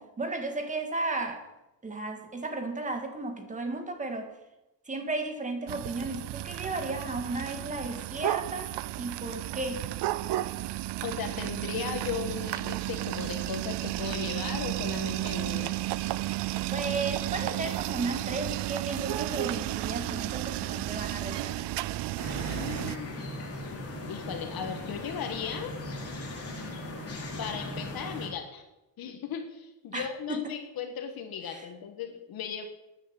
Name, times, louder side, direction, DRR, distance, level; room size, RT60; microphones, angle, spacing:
voice 1, 0.0-1.4 1.8-4.3 4.9-9.9 16.7-21.7 29.9-30.5 31.5-31.6, right 2 dB, 20° right, 1.7 m, -34 dB
sound 1, 5.7-23.0, right 16 dB, 90° right, 0.6 m, -33 dB
voice 2, 11.0-15.8 22.4-23.2 24.1-25.8 27.4-28.6 29.0-32.6, left 7 dB, 60° left, 1.6 m, -37 dB
sound 2, 22.2-28.3, left 1 dB, 35° left, 3.7 m, -38 dB
13.0 x 9.5 x 8.1 m
cardioid pair, 170°, 40 cm